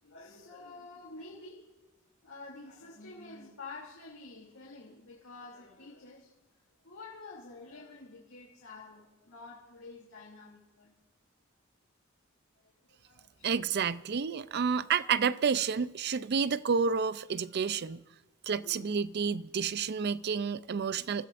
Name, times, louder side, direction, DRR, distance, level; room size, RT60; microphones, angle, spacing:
voice 1, 0.0-1.7 2.2-6.3 6.8-10.9 12.5-13.4 14.9-15.1 18.6-18.9, left 3 dB, 85° left, 2.9 m, -49 dB
voice 2, 13.4-18.0 18.5-21.3, right 6 dB, 50° right, 0.5 m, -30 dB
28.0 x 14.5 x 2.6 m
head